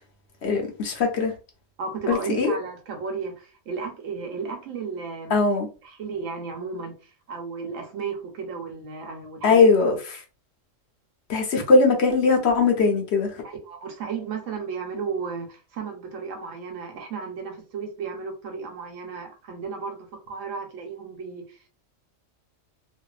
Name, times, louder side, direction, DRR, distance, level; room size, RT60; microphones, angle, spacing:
voice 1, 0.4-1.3 2.1-2.5 5.3-5.7 9.4-10.2 11.3-13.3, left 4 dB, 60° left, 0.9 m, -20 dB
voice 2, 1.8-5.4 5.8-9.6 13.4-21.7, right 5 dB, 85° right, 1.1 m, -34 dB
2.8 x 2.5 x 2.3 m
omnidirectional pair, 1.3 m